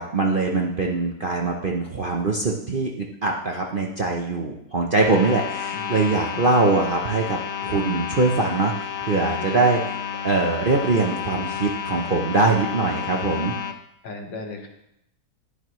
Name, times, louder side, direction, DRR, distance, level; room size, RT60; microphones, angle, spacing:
voice 1, 0.0-9.8 10.2-13.5, right 3 dB, 45° right, 0 dB, 0.7 m, -22 dB
sound 1, 4.9-13.7, left 8 dB, 60° left, 0.9 m, -31 dB
voice 2, 14.0-14.7, left 3 dB, 85° left, 3 dB, 2.1 m, -36 dB
11.0 x 10.5 x 3.1 m, 0.80 s
omnidirectional pair, 1.9 m